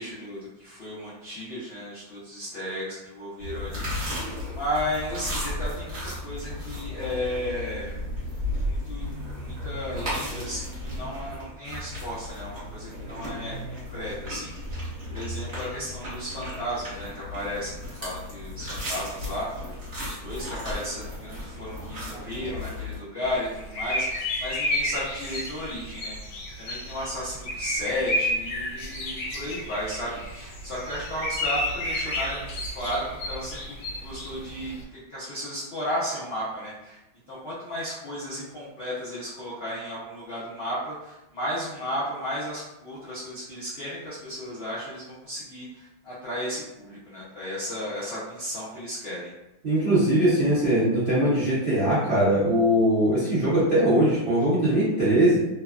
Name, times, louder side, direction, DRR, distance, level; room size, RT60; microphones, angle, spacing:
voice 1, 0.0-7.9 8.6-37.0 37.3-49.3, equal, 85° left, -10 dB, 0.5 m, -34 dB
sound 1, 3.4-23.0, left 1 dB, 40° right, 1.1 m, -35 dB
sound 2, 23.2-34.8, left 1 dB, 70° left, 1.2 m, -31 dB
voice 2, 49.6-55.4, right 1 dB, 60° right, -12 dB, 0.5 m, -21 dB
3.2 x 2.1 x 2.4 m, 0.95 s
omnidirectional pair, 2.2 m